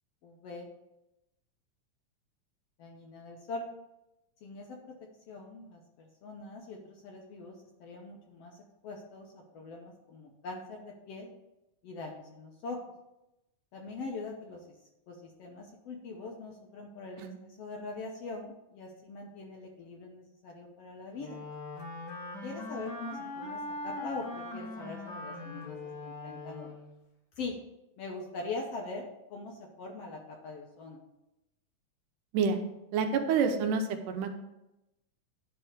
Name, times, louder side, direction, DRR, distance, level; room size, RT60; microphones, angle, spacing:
voice 1, 0.2-0.7 2.8-3.7 4.4-4.9 5.3-5.8 6.2-8.6 8.8-9.3 9.5-11.3 11.8-12.8 13.7-14.8 15.1-17.2 17.6-21.4 22.4-26.7 27.4-27.6 28.0-31.0, left 3 dB, 70° left, 0 dB, 1.6 m, -42 dB
Wind instrument woodwind instrument, 21.2-26.9, left 2 dB, 45° left, 1.5 m, -41 dB
voice 2, 32.9-34.4, right 5 dB, 85° right, 6 dB, 2.4 m, -28 dB
10.0 x 3.5 x 6.5 m, 0.93 s
omnidirectional pair, 3.6 m